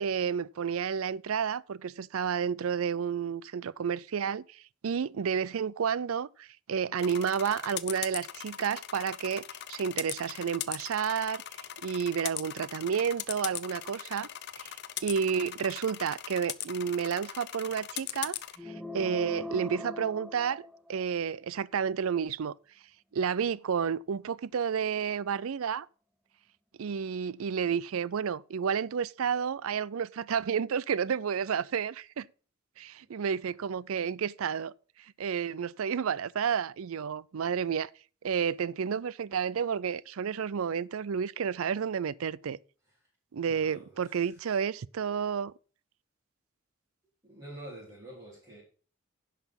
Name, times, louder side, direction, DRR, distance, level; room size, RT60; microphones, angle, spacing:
voice 1, 0.0-11.4 11.8-14.3 14.6-14.8 15.0-18.4 18.6-22.5 23.1-25.9 26.8-32.3 32.8-34.7 35.2-37.9 38.2-42.6 43.3-45.5, right 7 dB, 80° right, 0.4 m, -31 dB
sound 1, 7.0-18.6, left 12 dB, 50° left, 0.6 m, -40 dB
sound 2, 18.6-21.2, left 2 dB, ahead, 0.7 m, -41 dB
voice 2, 43.4-44.6 47.2-48.6, right 1 dB, 20° right, 4.1 m, -48 dB
10.5 x 5.8 x 5.7 m
head